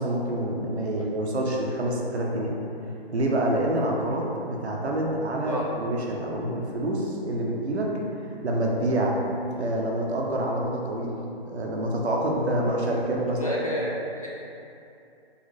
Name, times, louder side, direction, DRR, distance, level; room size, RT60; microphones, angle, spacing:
voice 1, 0.0-2.5 3.1-7.9 8.4-9.2 9.6-13.4, right 1 dB, 80° right, -1 dB, 0.9 m, -27 dB
voice 2, 13.3-13.9 14.2-14.3, equal, 35° left, -5 dB, 0.4 m, -30 dB
3.9 x 3.2 x 3.2 m, 2.7 s
hypercardioid pair, 170°, 32 cm